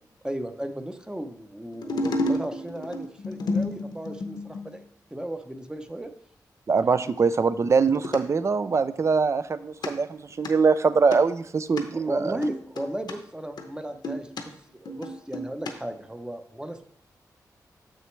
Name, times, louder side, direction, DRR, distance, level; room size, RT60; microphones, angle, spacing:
voice 1, 0.2-4.8 5.1-6.1 6.8-7.1 11.9-16.8, right 1 dB, 10° right, 7 dB, 0.7 m, -35 dB
sound 1, 1.7-4.8 7.9-8.2 9.8-9.9 10.3-10.5 11.1-11.2 11.8-11.9 12.4-13.1 13.6-14.4 14.9-15.7 16.0-16.1, left 2 dB, 75° left, 0.8 m, -31 dB
voice 2, 6.7-12.4, right 5 dB, 45° right, 14 dB, 0.4 m, -23 dB
6.8 x 6.3 x 3.2 m, 0.66 s
cardioid pair, 65°, 7 cm